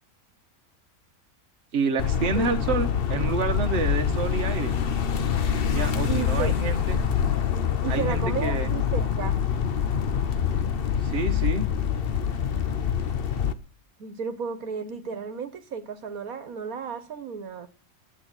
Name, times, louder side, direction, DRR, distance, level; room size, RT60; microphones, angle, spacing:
voice 1, 1.7-4.8 5.7-7.0 7.9-8.7 11.0-11.7, right 4 dB, 50° right, 5 dB, 1.4 m, -28 dB
sound 1, 2.0-13.5, left 8 dB, 45° left, 0.9 m, -25 dB
voice 2, 6.1-6.5 7.8-9.4 14.0-17.7, right 6 dB, 75° right, 10 dB, 1.6 m, -33 dB
10.5 x 8.8 x 8.9 m, 0.39 s
omnidirectional pair, 1.5 m